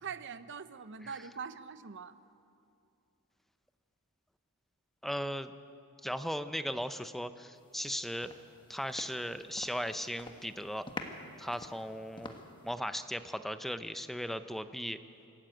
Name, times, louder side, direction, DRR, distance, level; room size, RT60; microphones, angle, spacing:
voice 1, 0.0-2.2, right 6 dB, 55° right, 12 dB, 0.8 m, -43 dB
voice 2, 5.0-5.5 6.0-8.3 8.7-10.9 11.4-12.3 12.6-15.0, equal, ahead, 10 dB, 0.6 m, -37 dB
sound 1, 7.7-7.9 8.2-9.9 10.1-10.5 10.9-12.7, left 2 dB, 20° left, 1.4 m, -46 dB
25.5 x 14.5 x 8.9 m, 2.7 s
head